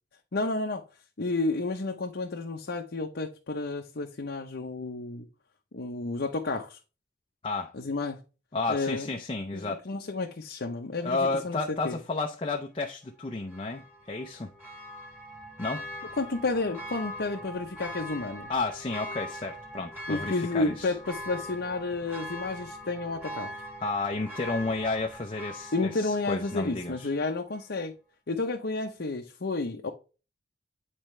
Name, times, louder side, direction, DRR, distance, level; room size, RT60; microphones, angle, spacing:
voice 1, 0.3-0.8 1.2-5.3 5.7-6.8 7.7-8.2 8.7-9.1 9.5-11.6 11.8-12.0 16.2-18.5 20.1-23.5 25.7-27.9 28.3-29.9, left 3 dB, 60° left, 0.8 m, -31 dB
voice 2, 8.5-9.8 11.0-14.5 15.6-15.9 18.5-20.9 23.8-27.1, left 3 dB, 30° left, 0.6 m, -32 dB
Church bell, 13.5-27.1 27.5-27.6, equal, 10° right, 2.1 m, -42 dB
9.0 x 4.4 x 3.2 m
head